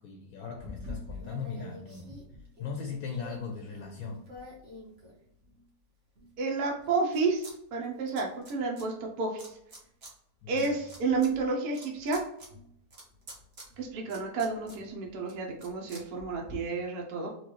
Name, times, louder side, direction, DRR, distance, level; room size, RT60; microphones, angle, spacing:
voice 1, 0.0-2.2 2.6-4.2 10.4-10.8, left 5 dB, 70° left, 2 dB, 1.1 m, -39 dB
sound 1, 0.6-5.6 6.1-7.5 7.8-8.8 9.4-10.1 10.5-16.5, left 1 dB, 50° right, 1.3 m, -47 dB
voice 2, 6.4-9.6 10.5-12.2 13.8-17.3, right 4 dB, 70° right, 0 dB, 1.1 m, -31 dB
4.4 x 2.3 x 2.9 m, 0.76 s
omnidirectional pair, 1.8 m